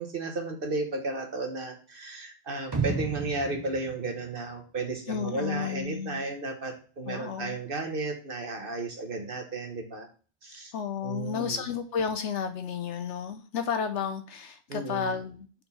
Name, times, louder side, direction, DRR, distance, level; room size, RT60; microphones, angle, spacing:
voice 1, 0.0-10.1 10.4-10.7 11.0-11.5 14.7-15.1, right 3 dB, 45° right, 4 dB, 1.1 m, -34 dB
sound 1, 2.7-4.9 5.2-5.3, right 5 dB, 25° right, 0.6 m, -33 dB
voice 2, 5.1-6.2 7.1-7.6 10.7-15.5, left 7 dB, 65° left, 7 dB, 0.8 m, -32 dB
4.4 x 4.3 x 5.4 m, 0.39 s
omnidirectional pair, 1.4 m